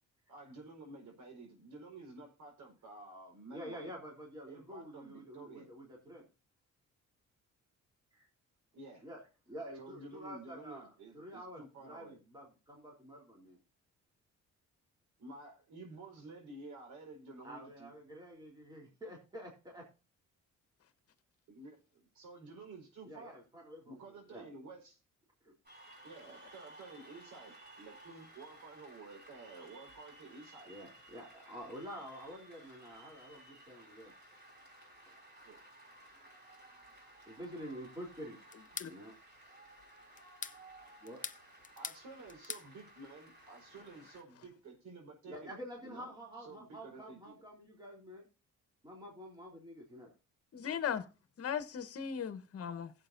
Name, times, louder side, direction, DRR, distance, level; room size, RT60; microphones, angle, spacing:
voice 1, 0.3-3.9 4.5-5.7 8.7-9.0 9.7-12.2 15.2-17.9 21.5-23.4 23.8-25.0 26.0-30.7 35.4-35.6 41.8-45.5 45.8-46.1 46.4-47.3, right 3 dB, 70° right, 4.7 m, -52 dB
voice 2, 3.5-6.3 8.1-8.3 9.0-9.2 9.5-13.6 17.4-19.9 23.0-24.0 24.3-24.5 25.4-25.5 30.7-34.1 35.0-35.2 37.3-38.4 38.9-39.1 41.0-41.2 45.3-48.3 48.8-50.1, equal, 15° right, 3.5 m, -48 dB
Cheering / Applause, 25.7-44.2, right 1 dB, 35° right, 5.4 m, -57 dB
sound 1, 38.5-38.9 40.2-40.6 41.1-42.0 42.3-42.7, left 6 dB, 25° left, 0.6 m, -43 dB
voice 3, 50.5-51.0 51.4-52.9, left 8 dB, 50° left, 1.2 m, -37 dB
16.0 x 7.8 x 2.6 m
cardioid pair, 90°, 30 cm